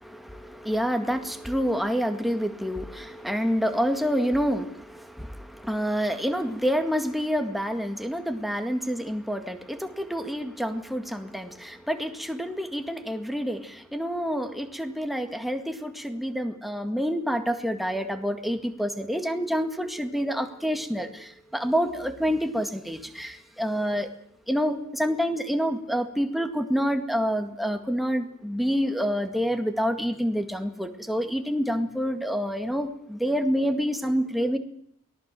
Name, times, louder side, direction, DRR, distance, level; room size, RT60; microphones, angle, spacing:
voice 1, 0.0-24.1 24.5-34.6, equal, ahead, 6 dB, 1.9 m, -28 dB
23.5 x 18.5 x 7.6 m, 0.70 s
head